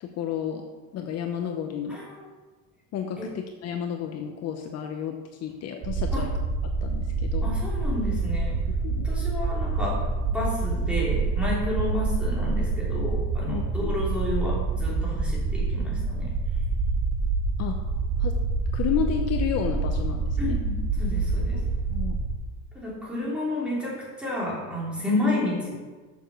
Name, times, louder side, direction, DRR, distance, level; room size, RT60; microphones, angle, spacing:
voice 1, 0.0-0.6 0.9-2.0 2.9-6.3 6.8-7.5 8.7-9.0 13.5-13.9 17.6-17.8 18.2-18.3 18.7-20.6 21.5-21.6 21.9-22.2, left 8 dB, 50° left, 5 dB, 0.8 m, -31 dB
voice 2, 1.9-2.3 3.2-3.3 6.1-6.2 7.4-8.6 9.0-10.0 10.3-16.3 20.4-21.6 22.7-25.8, left 2 dB, 5° right, -6 dB, 3.2 m, -31 dB
sound 1, 5.8-22.3, right 3 dB, 50° right, 1.2 m, -27 dB
7.1 x 6.8 x 6.3 m, 1.4 s
cardioid pair, 150°, 32 cm